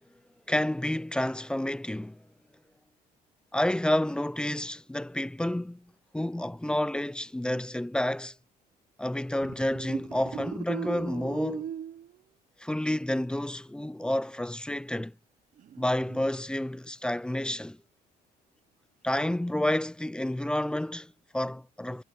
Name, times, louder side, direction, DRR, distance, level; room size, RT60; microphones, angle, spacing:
voice 1, 0.5-2.2 3.5-8.3 9.0-11.7 12.6-15.1 15.8-17.8 19.0-22.0, left 1 dB, 5° left, 0.7 m, -30 dB
sound 1, 9.4-12.2 15.6-16.3, right 9 dB, 50° right, 1.4 m, -38 dB
cardioid pair, 110°, 17 cm